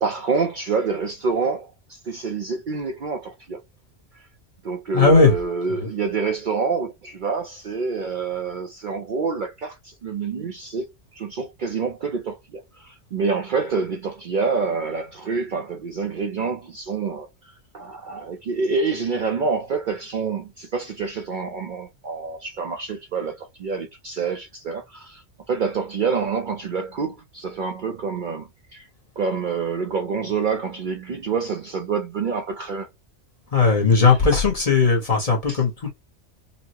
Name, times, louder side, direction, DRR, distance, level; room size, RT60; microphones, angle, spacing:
voice 1, 0.0-3.6 4.6-10.8 11.1-28.9 29.2-32.9 35.5-35.6, right 5 dB, 55° right, 0.6 m, -27 dB
voice 2, 4.9-5.4 5.7-5.9 33.5-35.9, left 4 dB, 35° left, 0.9 m, -17 dB
4.0 x 2.1 x 2.8 m
omnidirectional pair, 1.2 m